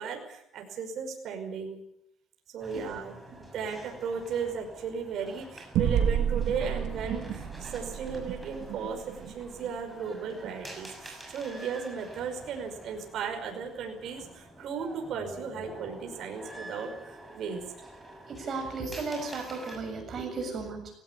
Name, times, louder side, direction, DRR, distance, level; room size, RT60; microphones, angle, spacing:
voice 1, 0.0-1.8 2.5-17.6, right 6 dB, 60° right, 3 dB, 5.6 m, -36 dB
sound 1, 2.6-19.8, right 1 dB, 5° right, 6.4 m, -47 dB
sound 2, 5.7-10.6, right 8 dB, 75° right, 3.2 m, -31 dB
voice 2, 18.3-20.9, right 4 dB, 40° right, 4 dB, 7.3 m, -35 dB
19.0 x 18.0 x 9.6 m, 0.76 s
cardioid pair, 140°, 0 cm